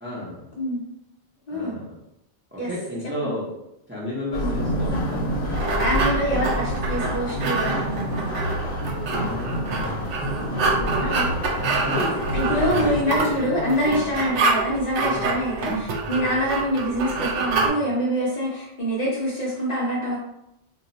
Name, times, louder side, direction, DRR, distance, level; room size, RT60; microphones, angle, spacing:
voice 1, 0.0-0.4 1.5-1.9 2.5-3.5 3.9-5.0 5.5-6.5 9.1-10.1 10.5-11.4 11.8-13.8 15.1-15.3 16.1-16.3, left 1 dB, 15° right, -6 dB, 0.5 m, -33 dB
voice 2, 1.5-1.8 2.6-2.7 3.2-3.3 4.4-4.5 5.8-7.9 11.0-11.3 12.3-20.2, equal, 45° left, -5 dB, 0.6 m, -25 dB
sound 1, 4.3-13.0, equal, 70° left, 0.9 m, -28 dB
sound 2, 5.0-17.7, right 3 dB, 80° right, 0.9 m, -27 dB
2.2 x 2.1 x 3.8 m, 0.84 s
omnidirectional pair, 1.1 m